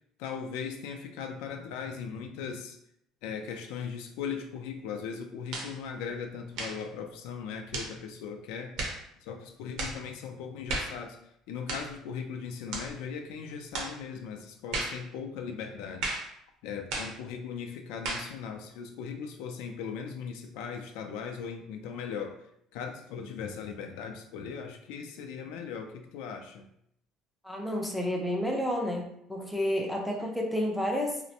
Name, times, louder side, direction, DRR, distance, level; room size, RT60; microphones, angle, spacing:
voice 1, 0.2-2.8 3.2-8.8 9.2-11.2 11.5-16.1 16.6-22.4 22.7-26.7, left 6 dB, 85° left, 5 dB, 0.3 m, -38 dB
sound 1, 5.5-5.8 6.5-6.8 7.7-8.0 8.8-9.0 9.8-10.0 10.7-11.0 11.7-11.9 12.7-12.9 13.7-14.0 14.7-15.0 16.0-16.3 16.9-17.2 18.0-18.3, right 2 dB, 70° right, 0.6 m, -34 dB
voice 2, 27.4-31.2, equal, ahead, -1 dB, 0.4 m, -30 dB
2.5 x 2.0 x 2.7 m, 0.73 s
cardioid pair, 140°, 0 cm